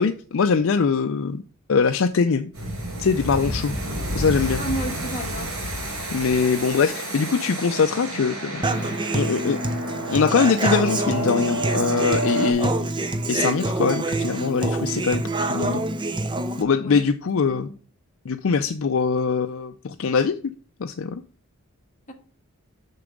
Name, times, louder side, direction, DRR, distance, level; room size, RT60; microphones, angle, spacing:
voice 1, 0.0-1.4 1.7-2.5 3.0-3.7 4.1-4.6 6.1-9.6 10.1-12.7 13.3-15.8 16.6-17.7 18.3-20.4 20.8-21.2, left 5 dB, 60° left, 0.4 m, -22 dB
sound 1, 2.5-12.5, right 1 dB, 85° right, 3.5 m, -30 dB
voice 2, 4.6-5.5 16.7-17.0 17.4-17.7 22.1-22.2, right 1 dB, 35° left, 1.5 m, -32 dB
Human voice / Acoustic guitar, 8.6-16.6, right 2 dB, 20° right, 0.6 m, -26 dB
6.7 x 6.0 x 5.1 m
head